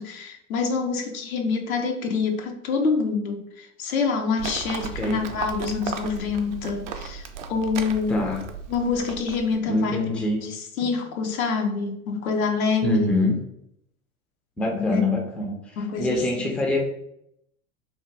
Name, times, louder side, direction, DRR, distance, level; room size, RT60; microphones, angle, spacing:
voice 1, 0.0-8.2 8.7-10.0 10.4-13.2 14.7-15.0 15.8-16.2, left 5 dB, 75° left, 4 dB, 0.7 m, -26 dB
Livestock farm animals working animals, 4.4-9.6, right 6 dB, 55° right, 0.5 m, -35 dB
voice 2, 8.1-8.4 9.7-10.4 10.8-10.9 12.8-13.4 14.6-15.5 16.0-16.8, left 1 dB, 5° left, -1 dB, 0.4 m, -24 dB
2.9 x 2.2 x 3.2 m, 0.76 s
hypercardioid pair, 95°, 42 cm